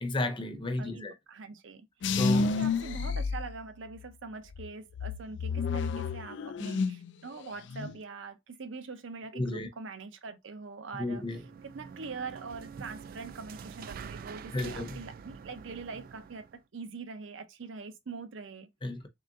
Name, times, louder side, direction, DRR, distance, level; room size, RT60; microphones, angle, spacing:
voice 1, 0.0-1.2 2.2-2.5 9.3-9.7 10.9-11.4 14.5-15.0 18.8-19.1, left 2 dB, 25° left, 0.6 m, -32 dB
voice 2, 0.8-1.9 2.3-18.7, right 4 dB, 85° right, 0.6 m, -43 dB
sound 1, 2.0-4.1 4.5-7.1 7.4-8.0, left 4 dB, 70° left, 0.4 m, -31 dB
sound 2, 11.1-16.6, right 6 dB, 50° right, 0.3 m, -46 dB
3.8 x 2.4 x 3.6 m
head